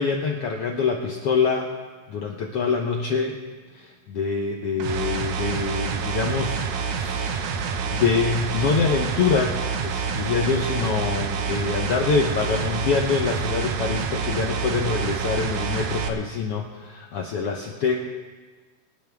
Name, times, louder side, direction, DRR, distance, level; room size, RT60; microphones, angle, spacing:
voice 1, 0.0-1.7 2.1-3.4 3.7-18.0, left 5 dB, 75° left, 2 dB, 1.4 m, -25 dB
sound 1, 4.8-16.1, right 6 dB, 70° right, 2.1 m, -27 dB
24.0 x 10.0 x 3.5 m, 1.4 s
omnidirectional pair, 3.8 m